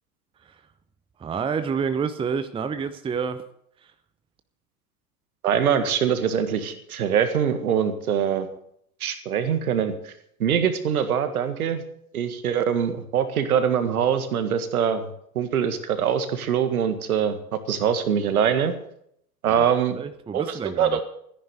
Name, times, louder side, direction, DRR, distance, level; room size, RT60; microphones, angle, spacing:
voice 1, 1.2-3.4 19.4-19.6 19.9-21.0, right 6 dB, 10° right, 11 dB, 0.8 m, -28 dB
voice 2, 5.4-8.5 9.0-10.1 10.4-11.8 12.1-15.1 15.4-18.7 19.4-20.0 20.3-21.0, right 8 dB, 65° right, 10 dB, 1.8 m, -23 dB
14.5 x 10.5 x 6.6 m, 0.70 s
figure-of-eight pair, 85°, 46 cm